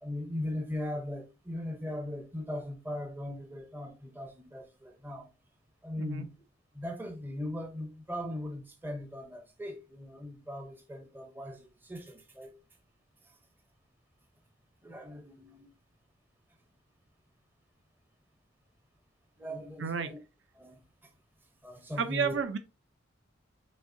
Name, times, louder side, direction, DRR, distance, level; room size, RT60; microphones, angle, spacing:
voice 1, 0.0-5.3 5.8-6.3 6.7-12.5 13.3-13.4 14.8-15.7 19.4-20.2 20.6-21.1 21.6-22.4, left 1 dB, 10° right, 0.6 m, -39 dB
voice 2, 19.8-20.1 22.0-22.6, right 6 dB, 65° right, 0.5 m, -31 dB
6.4 x 2.7 x 2.6 m
head